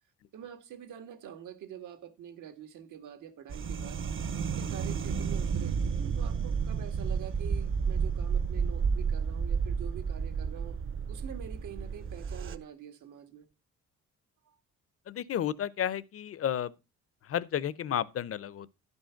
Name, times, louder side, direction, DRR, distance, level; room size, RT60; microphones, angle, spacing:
voice 1, 0.3-4.0 4.4-5.8 6.1-10.8 11.1-13.5 14.4-14.6, right 9 dB, 80° right, 1.8 m, -46 dB
sound 1, 3.5-12.6, right 6 dB, 45° right, 0.8 m, -31 dB
voice 2, 15.1-16.7 17.3-18.7, left 10 dB, 50° left, 0.7 m, -32 dB
11.0 x 5.4 x 5.6 m
cardioid pair, 90°, 30 cm